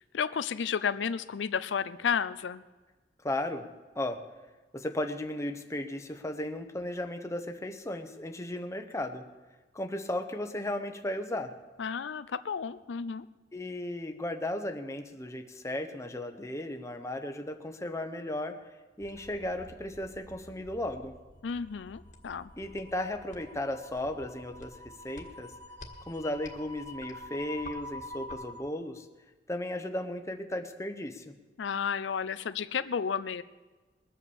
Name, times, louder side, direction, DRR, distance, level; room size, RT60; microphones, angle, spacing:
voice 1, 0.1-2.6 11.8-13.3 21.4-22.5 31.6-33.4, left 6 dB, 90° left, 14 dB, 0.5 m, -32 dB
voice 2, 3.2-3.7 3.9-4.2 4.7-9.2 9.7-11.5 13.5-18.6 19.0-21.2 22.6-25.5 26.1-29.1 29.5-31.3, left 1 dB, 15° left, 5 dB, 1.0 m, -35 dB
sound 1, 19.0-28.7, left 1 dB, 45° left, 1.6 m, -47 dB
21.0 x 8.4 x 7.1 m, 1.3 s
head